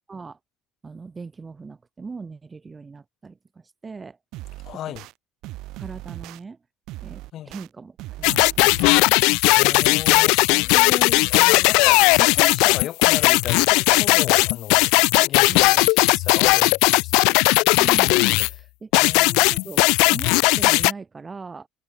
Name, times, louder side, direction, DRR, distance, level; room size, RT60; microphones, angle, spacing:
voice 1, 0.1-0.4 0.8-4.2 4.9-5.0 5.8-6.6 7.0-8.8 15.5-15.9 17.8-21.7, right 4 dB, 25° right, 1.5 m, -39 dB
sound 1, 4.3-5.1 5.4-6.4 6.9-7.7 8.0-9.0, right 19 dB, 70° right, 3.2 m, -38 dB
voice 2, 4.6-5.0 7.3-7.5 9.5-14.9 15.2-17.4 19.0-19.7, left 12 dB, 55° left, 3.6 m, -34 dB
sound 2, 8.2-18.5 18.9-20.9, left 28 dB, 85° left, 0.3 m, -17 dB
cardioid pair, 110°, 0 cm